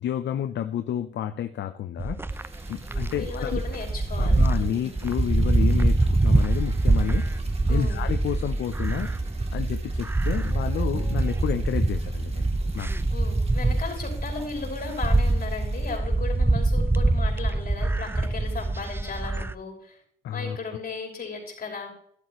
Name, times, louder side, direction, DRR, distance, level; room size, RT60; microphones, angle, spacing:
voice 1, 0.0-2.2 2.7-3.6 4.2-7.3 7.7-9.1 9.5-12.5 12.7-12.9 20.2-20.6, left 10 dB, 65° left, 9 dB, 0.7 m, -30 dB
sound 1, 2.0-19.5, right 2 dB, 10° right, 0.5 m, -24 dB
Liquid, 2.3-16.0, right 2 dB, 30° right, 2.3 m, -51 dB
voice 2, 3.1-4.9 7.7-8.0 13.1-20.0 20.3-21.9, left 4 dB, 50° left, -1 dB, 5.4 m, -36 dB
12.5 x 12.0 x 3.1 m, 0.66 s
cardioid pair, 90°, 20 cm